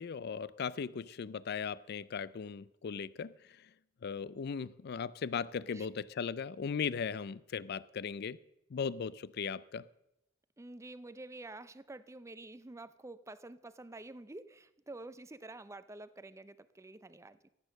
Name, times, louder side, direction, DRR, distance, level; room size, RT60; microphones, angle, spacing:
voice 1, 0.0-3.3 4.0-8.4 8.7-9.8, left 6 dB, 55° left, 19 dB, 0.4 m, -37 dB
voice 2, 10.6-17.5, right 2 dB, 15° right, 14 dB, 0.5 m, -49 dB
15.0 x 8.4 x 6.4 m, 0.85 s
head